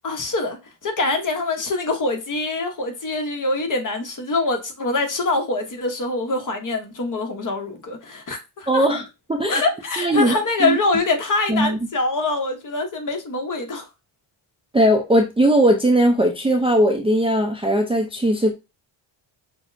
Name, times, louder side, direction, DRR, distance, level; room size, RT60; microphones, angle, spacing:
voice 1, 0.0-8.9 9.5-13.9, left 3 dB, 40° left, 1.0 m, -24 dB
voice 2, 8.7-9.0 9.3-9.6 10.0-10.8 11.5-11.8 14.7-18.5, right 1 dB, 10° right, 0.4 m, -19 dB
6.1 x 2.1 x 2.6 m
cardioid pair, 110°, 48 cm